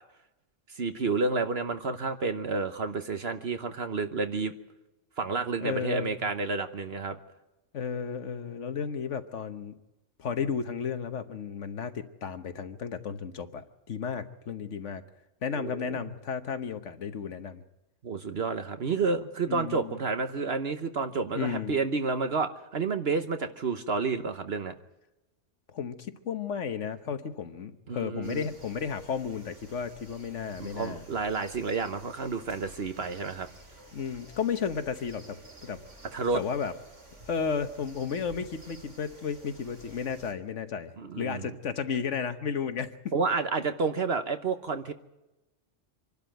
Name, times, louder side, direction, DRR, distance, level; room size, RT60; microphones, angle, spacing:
voice 1, 0.7-4.5 5.2-7.2 15.5-16.1 18.0-24.7 27.9-28.5 30.6-33.5 36.1-36.4 41.0-41.5 43.1-44.9, right 4 dB, 60° right, 8 dB, 1.2 m, -30 dB
voice 2, 5.6-6.2 7.7-9.7 10.2-15.0 15.4-17.6 19.5-20.0 21.3-21.8 25.7-31.0 33.9-35.8 36.3-36.7 37.3-42.9, left 6 dB, 75° left, 9 dB, 1.4 m, -33 dB
sound 1, 28.2-40.3, right 1 dB, 80° right, 3.4 m, -52 dB
26.0 x 12.0 x 9.1 m, 0.98 s
omnidirectional pair, 1.2 m